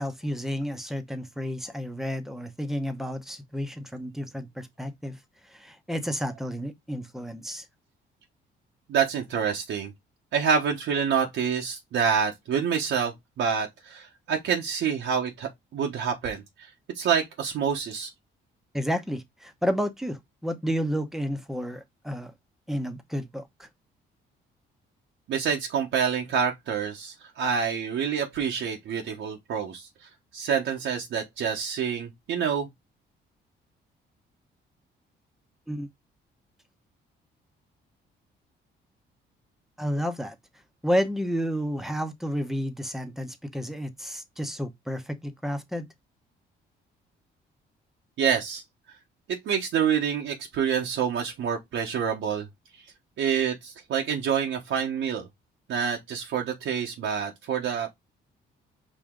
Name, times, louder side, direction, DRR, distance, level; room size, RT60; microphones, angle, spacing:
voice 1, 0.0-5.2 5.4-7.6 18.7-22.3 22.7-23.7 35.7-35.9 39.8-40.4 40.8-45.9, equal, ahead, 0.9 m, -31 dB
voice 2, 8.9-9.9 10.3-16.4 17.0-18.1 25.3-29.9 30.3-32.7 48.2-48.6 49.4-52.5 53.2-55.3 55.7-57.9, right 7 dB, 75° right, 1.0 m, -27 dB
5.0 x 2.8 x 3.6 m
cardioid pair, 90°, 20 cm